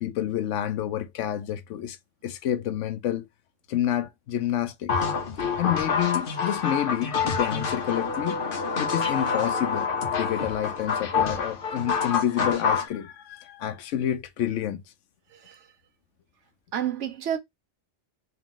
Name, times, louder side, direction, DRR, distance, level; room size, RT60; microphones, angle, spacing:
voice 1, 0.0-2.0 2.2-3.3 3.7-4.9 5.6-8.4 8.8-14.8, left 11 dB, 90° left, 0.9 m, -29 dB
sound 1, 4.9-12.9, left 5 dB, 50° left, 1.0 m, -27 dB
voice 2, 16.7-17.4, right 10 dB, 85° right, 1.1 m, -29 dB
3.3 x 3.0 x 3.6 m
omnidirectional pair, 1.2 m